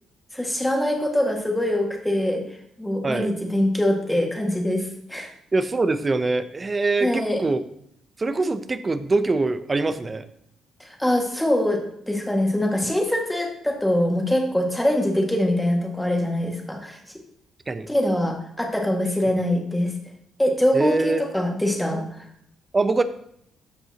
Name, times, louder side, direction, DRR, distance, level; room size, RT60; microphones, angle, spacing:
voice 1, 0.3-2.4 2.8-5.3 7.0-7.4 10.8-11.8 12.1-17.0 17.9-19.9 20.4-22.3, left 1 dB, 5° left, 1 dB, 1.9 m, -23 dB
voice 2, 5.5-7.6 8.2-10.2 17.7-17.9 20.7-21.2 22.7-23.0, right 3 dB, 25° right, 11 dB, 0.7 m, -23 dB
13.5 x 5.5 x 2.9 m, 0.70 s
cardioid pair, 90°, 0 cm